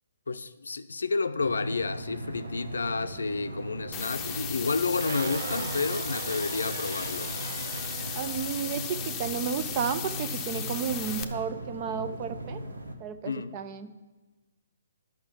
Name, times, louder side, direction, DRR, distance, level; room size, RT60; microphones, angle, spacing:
voice 1, 0.3-7.3 13.2-13.6, left 4 dB, 80° left, 0.6 m, -30 dB
sound 1, 1.4-13.0, right 1 dB, 85° right, 1.4 m, -39 dB
sound 2, 3.9-11.2, left 8 dB, 20° left, 0.8 m, -36 dB
sound 3, 4.9-9.1, right 7 dB, 55° right, 0.4 m, -40 dB
voice 2, 8.1-12.6 13.0-13.9, right 7 dB, 35° right, 0.7 m, -32 dB
10.5 x 5.9 x 7.3 m
figure-of-eight pair, 135°, 0 cm